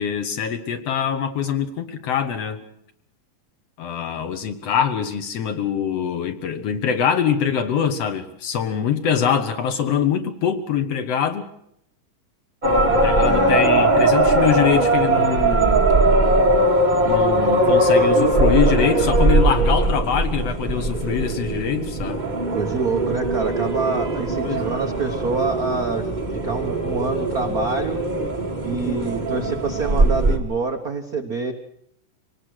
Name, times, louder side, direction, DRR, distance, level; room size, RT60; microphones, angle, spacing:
voice 1, 0.0-2.6 3.8-11.5 12.9-15.9 17.1-22.2 24.4-24.7, left 8 dB, 60° left, 9 dB, 2.0 m, -23 dB
sound 1, 12.6-30.4, right 2 dB, 30° right, 0.8 m, -20 dB
voice 2, 13.2-13.6 22.5-26.2 26.4-28.0 28.6-31.5, right 4 dB, 65° right, 5 dB, 0.9 m, -26 dB
25.0 x 18.5 x 6.4 m, 0.72 s
omnidirectional pair, 3.7 m